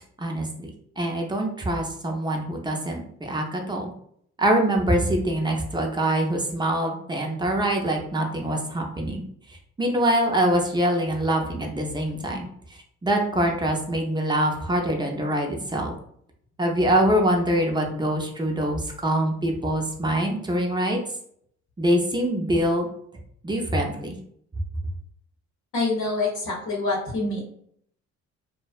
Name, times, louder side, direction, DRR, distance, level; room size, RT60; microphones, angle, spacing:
voice 1, 0.2-0.7 1.0-3.9 4.4-9.2 9.8-12.5 13.0-15.9 16.6-21.0 21.8-22.9 23.4-24.1, right 1 dB, 15° right, 1 dB, 0.5 m, -24 dB
voice 2, 25.7-27.4, left 3 dB, 70° left, -2 dB, 0.8 m, -26 dB
2.5 x 2.1 x 2.3 m, 0.67 s
cardioid pair, 90°, 30 cm